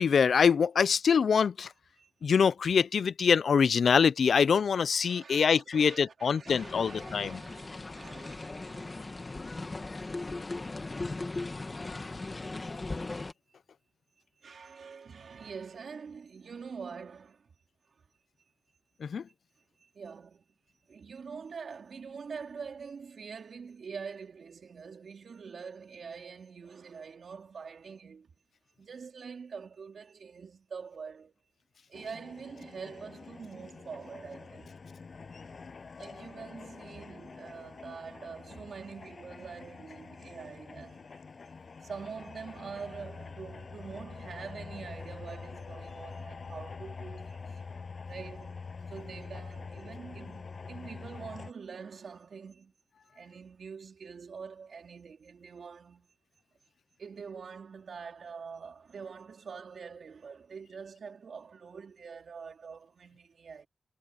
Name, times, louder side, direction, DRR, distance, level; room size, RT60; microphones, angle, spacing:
voice 1, 0.0-1.7 2.2-7.4 19.0-19.2, left 6 dB, 85° left, 0.4 m, -24 dB
voice 2, 5.0-9.2 11.6-11.7 12.7-12.9 14.4-17.5 19.8-20.4 20.9-28.3 28.8-31.3 31.9-34.8 36.0-41.2 41.8-48.6 48.9-52.7 53.1-56.1 57.0-63.7, right 5 dB, 80° right, 3.7 m, -45 dB
sound 1, 6.5-13.3, left 3 dB, 35° left, 2.0 m, -38 dB
sound 2, 31.9-51.5, left 4 dB, 60° left, 7.6 m, -45 dB
wide cardioid pair, 75°, 0 cm